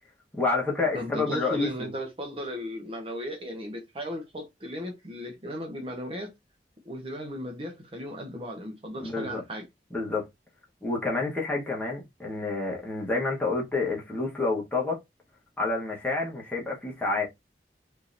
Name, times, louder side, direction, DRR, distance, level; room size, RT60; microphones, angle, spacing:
voice 1, 0.3-1.9 9.0-9.4 9.9-10.3 10.8-15.0 15.6-17.3, left 3 dB, 10° left, 1.2 m, -29 dB
voice 2, 0.9-6.3 6.8-9.7, equal, 30° right, 0.9 m, -36 dB
3.6 x 2.9 x 2.5 m
head